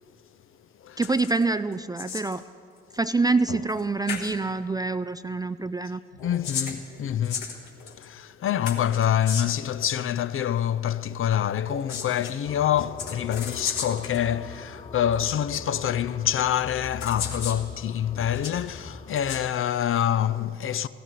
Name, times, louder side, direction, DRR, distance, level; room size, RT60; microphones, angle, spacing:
sound 1, 1.0-1.4 1.7-2.4 3.7-3.8 4.1-4.3 6.1-8.0 8.6-9.7 11.6-12.3 13.0-14.2 15.1-15.2 16.3-16.4 17.0-17.6 18.1-18.6 19.1-19.4, left 6 dB, 75° left, 1.4 m, -35 dB
voice 1, 1.0-2.4 2.9-6.0, right 3 dB, 15° right, 0.4 m, -26 dB
voice 2, 6.2-20.9, left 10 dB, 40° left, 0.6 m, -26 dB
sound 2, 12.4-19.6, left 3 dB, 20° left, 2.0 m, -42 dB
15.0 x 10.0 x 9.2 m
figure-of-eight pair, 45°, 31 cm